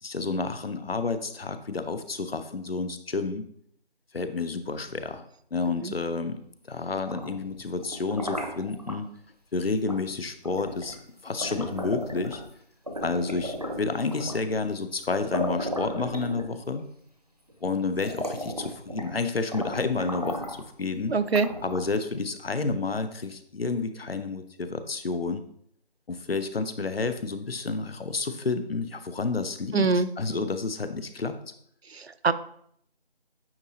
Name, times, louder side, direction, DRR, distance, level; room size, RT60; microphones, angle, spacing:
voice 1, 0.0-3.4 4.1-5.2 5.5-6.4 6.7-9.1 9.5-11.0 11.2-12.4 13.0-16.8 17.6-21.1 21.6-25.4 26.1-29.9 30.2-31.4, left 4 dB, 70° left, 10 dB, 0.7 m, -30 dB
sound 1, 6.9-9.0 9.9-10.1 10.4-12.5 12.9-14.5 15.0-15.1 15.3-16.8 17.5-17.6 17.9-19.2 19.5-20.7 21.3-22.1, equal, 40° right, 0.7 m, -35 dB
voice 2, 21.1-21.5 29.7-30.1 31.9-32.3, right 4 dB, 80° right, 13 dB, 0.6 m, -24 dB
8.8 x 3.8 x 2.8 m, 0.67 s
figure-of-eight pair, 180°, 31 cm